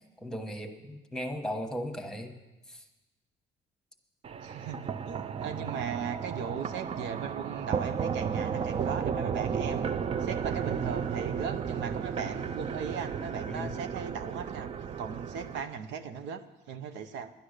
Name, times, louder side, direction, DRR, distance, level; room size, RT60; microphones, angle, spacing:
voice 1, 0.2-2.3 2.7-2.8 13.5-13.8, equal, 5° left, 4 dB, 1.1 m, -36 dB
sound 1, 4.2-15.6, right 7 dB, 35° right, 0.4 m, -34 dB
voice 2, 4.4-9.9 10.2-14.7 15.0-16.4 16.7-17.3, right 7 dB, 85° right, 8 dB, 0.9 m, -37 dB
11.5 x 10.5 x 6.5 m, 1.1 s
cardioid pair, 140°, 18 cm